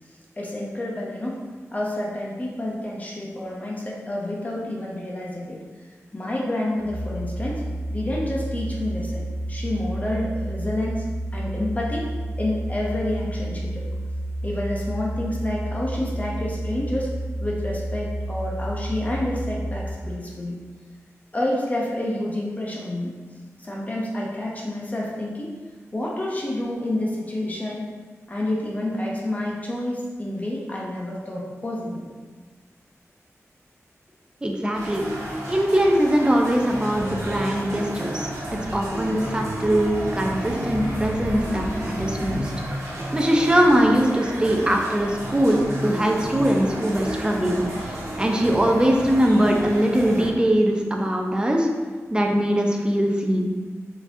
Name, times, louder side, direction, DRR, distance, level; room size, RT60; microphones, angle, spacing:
voice 1, 0.4-1.4 1.7-5.6 6.1-7.6 7.9-11.0 11.3-12.1 12.4-13.8 14.4-17.1 17.4-20.6 21.3-23.1 23.6-25.5 25.9-27.9 28.3-32.1, left 1 dB, 30° left, -3 dB, 0.7 m, -29 dB
sound 1, 6.8-19.8, right 1 dB, 55° right, 1.2 m, -30 dB
voice 2, 34.4-35.1 35.5-38.3 38.7-42.5 43.1-51.7 52.1-53.5, equal, 15° right, 1 dB, 0.6 m, -21 dB
sound 2, 34.7-50.3, equal, 85° right, 1.1 m, -31 dB
4.7 x 4.1 x 2.7 m, 1.4 s
wide cardioid pair, 100°, 5 cm